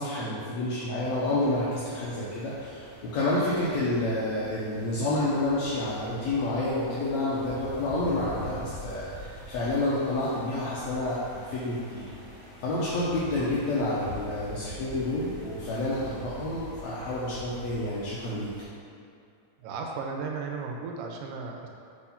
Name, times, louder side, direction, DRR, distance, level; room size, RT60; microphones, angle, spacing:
voice 1, 0.0-12.1 12.6-18.5, left 2 dB, 70° left, -8 dB, 1.7 m, -29 dB
sound 1, 1.0-18.6, equal, 45° left, 1.6 m, -45 dB
voice 2, 19.6-21.7, right 4 dB, 80° right, 1 dB, 2.2 m, -35 dB
6.3 x 3.7 x 5.6 m, 2.5 s
omnidirectional pair, 4.1 m